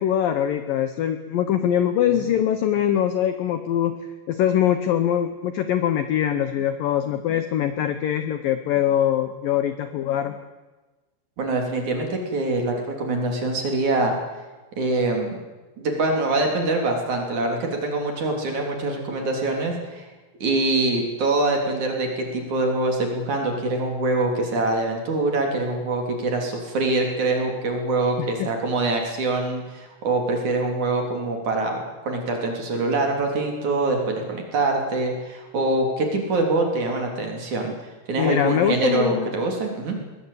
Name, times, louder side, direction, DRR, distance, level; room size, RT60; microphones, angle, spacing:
voice 1, 0.0-4.0 4.3-10.4 28.2-28.5 38.2-39.3, left 10 dB, 70° left, 9 dB, 2.2 m, -23 dB
voice 2, 11.4-14.2 14.8-15.4 15.8-20.1 20.4-37.7 38.1-40.0, right 2 dB, 45° right, 2 dB, 4.3 m, -24 dB
22.0 x 20.0 x 8.5 m, 1.2 s
omnidirectional pair, 5.3 m